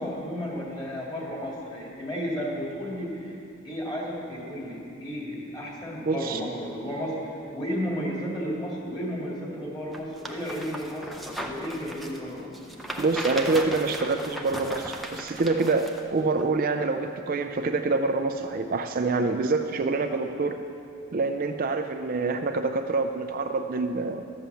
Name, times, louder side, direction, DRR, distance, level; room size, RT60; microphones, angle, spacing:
voice 1, 0.0-3.4 3.6-7.2 7.5-12.5, equal, 20° left, -4 dB, 2.4 m, -33 dB
voice 2, 6.1-6.4 13.0-20.6 21.1-24.2, right 3 dB, 40° right, 6 dB, 0.4 m, -26 dB
sound 1, 9.9-16.0 16.4-16.5, equal, ahead, 0.7 m, -37 dB
12.5 x 7.7 x 6.9 m, 2.6 s
head